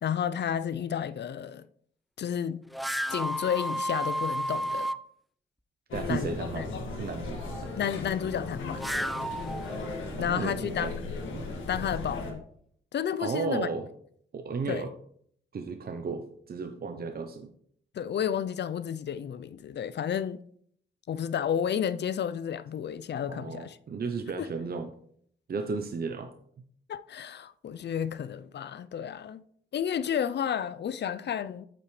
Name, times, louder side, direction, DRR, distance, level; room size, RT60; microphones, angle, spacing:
voice 1, 0.0-1.7 2.2-2.7 3.1-4.9 6.1-6.7 7.8-8.9 10.2-10.9 11.7-12.4 12.9-13.7 14.7-14.9 17.9-20.4 21.1-23.8 24.4-24.5 26.9-29.4 29.7-31.7, left 8 dB, 60° left, 0.5 m, -31 dB
sound 1, 2.7-5.0 8.5-10.3, equal, ahead, 0.4 m, -32 dB
sound 2, 5.9-12.3, left 2 dB, 90° left, 1.9 m, -37 dB
voice 2, 5.9-6.7 7.0-7.7 10.2-10.9 11.3-11.5 13.2-13.9 14.3-14.9 15.5-17.5 23.3-24.9 25.5-26.3, right 4 dB, 50° right, 0.8 m, -34 dB
8.6 x 8.6 x 3.2 m
cardioid pair, 70°, 19 cm